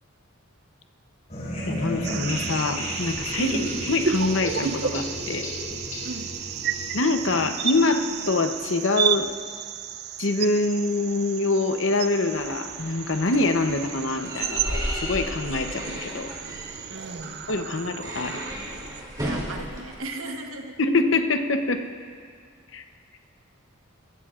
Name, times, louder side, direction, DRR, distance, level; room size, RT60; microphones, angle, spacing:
sound 1, 1.3-8.8, equal, 35° left, 4.6 m, -33 dB
voice 1, 1.7-3.5 3.9-5.5 6.9-9.3 10.2-16.3 17.5-18.4 20.8-21.8 22.7-22.8, left 3 dB, 60° left, 7 dB, 0.8 m, -25 dB
sound 2, 2.0-19.0, right 8 dB, 50° right, 0.4 m, -33 dB
sound 3, 12.3-19.9, equal, 20° right, 2.8 m, -34 dB
voice 2, 16.9-17.4 19.2-20.8, right 2 dB, 80° right, 3 dB, 1.2 m, -35 dB
22.0 x 16.5 x 2.5 m, 2.1 s
head